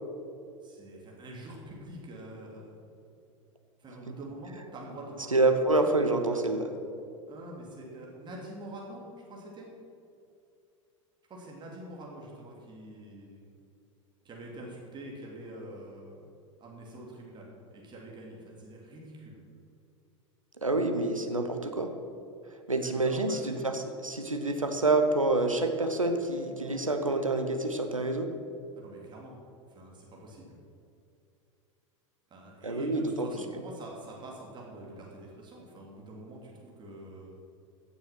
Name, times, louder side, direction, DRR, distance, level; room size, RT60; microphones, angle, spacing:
voice 1, 0.6-2.7 3.8-5.9 7.3-9.7 11.3-13.5 14.2-16.2 16.6-19.4 22.8-23.6 28.8-29.4 29.7-30.5 32.3-37.3, right 1 dB, 25° right, -2 dB, 3.1 m, -45 dB
voice 2, 5.3-6.7 20.6-21.9 22.7-28.3 32.6-33.3, right 2 dB, 85° right, 6 dB, 1.2 m, -27 dB
15.5 x 7.4 x 6.0 m, 2.6 s
figure-of-eight pair, 85°, 17 cm